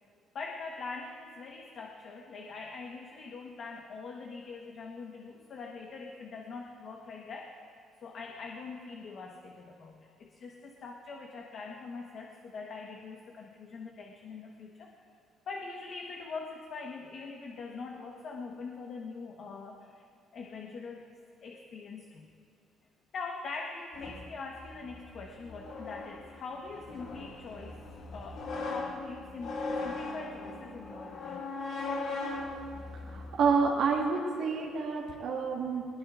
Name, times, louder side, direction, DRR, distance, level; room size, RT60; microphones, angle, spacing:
voice 1, 0.3-7.7 8.0-15.1 15.5-20.0 20.3-21.0 21.4-22.3 23.1-27.8 28.1-31.5, left 4 dB, 40° left, 0 dB, 1.2 m, -43 dB
sound 1, 23.9-33.9, left 3 dB, 60° left, 2.3 m, -39 dB
voice 2, 33.1-35.9, right 5 dB, 55° right, -2 dB, 1.5 m, -28 dB
21.5 x 20.5 x 2.5 m, 2.4 s
cardioid pair, 175°, 0 cm